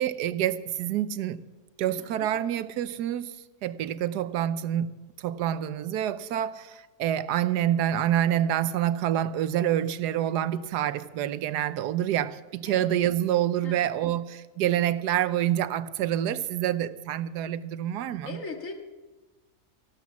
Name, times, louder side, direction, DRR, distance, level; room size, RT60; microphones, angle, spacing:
voice 1, 0.0-1.4 1.8-3.4 3.6-4.9 5.2-18.4, right 11 dB, 85° right, 1.3 m, -27 dB
voice 2, 18.3-18.7, left 3 dB, 55° left, 2.1 m, -37 dB
14.5 x 12.0 x 7.2 m
omnidirectional pair, 1.7 m